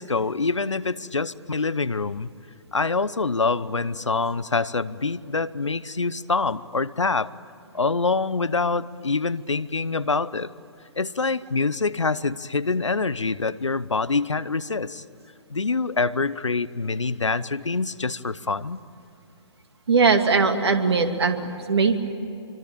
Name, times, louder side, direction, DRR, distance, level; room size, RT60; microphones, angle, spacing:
voice 1, 0.0-2.3 2.7-7.3 7.7-10.5 11.0-15.0 15.5-18.8, left 4 dB, 85° left, 17 dB, 0.9 m, -25 dB
voice 2, 19.9-22.0, right 4 dB, 60° right, 6 dB, 2.6 m, -20 dB
25.5 x 25.0 x 8.9 m, 2.8 s
figure-of-eight pair, 130°, 15 cm